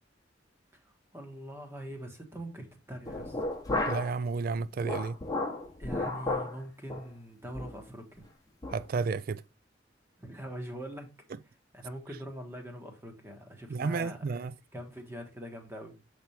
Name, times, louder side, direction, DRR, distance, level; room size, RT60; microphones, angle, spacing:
voice 1, 0.7-3.4 5.8-8.3 10.2-11.1 11.7-14.4 14.7-16.0, equal, 15° right, 1.3 m, -43 dB
sound 1, 3.1-4.2 4.5-6.6 6.9-7.1 7.5-7.8 8.2-8.3 8.6-8.8, left 2 dB, 20° left, 1.1 m, -33 dB
voice 2, 3.9-5.2 8.7-9.4 13.7-14.5, right 4 dB, 50° right, 0.4 m, -31 dB
7.6 x 3.5 x 4.3 m
head